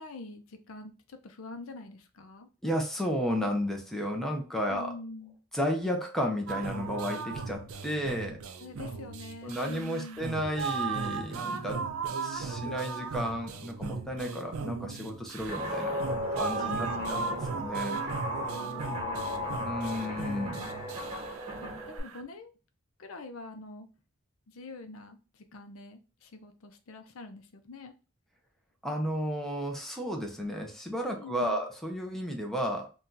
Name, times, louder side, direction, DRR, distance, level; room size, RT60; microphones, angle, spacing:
voice 1, 0.0-2.5 4.7-5.4 8.6-10.2 16.6-17.4 18.5-19.6 21.6-22.5 23.0-23.9 24.5-27.9 31.1-31.6, left 2 dB, 70° left, 7 dB, 0.5 m, -45 dB
voice 2, 2.6-4.9 5.5-8.4 9.4-11.9 12.2-16.0 16.3-18.1 19.6-20.6 28.8-32.9, equal, ahead, 1 dB, 0.5 m, -33 dB
sound 1, 6.5-22.2, right 5 dB, 80° right, 0.5 m, -37 dB
Guitar, 15.5-22.0, left 1 dB, 25° right, 1.0 m, -35 dB
2.7 x 2.3 x 3.7 m, 0.34 s
head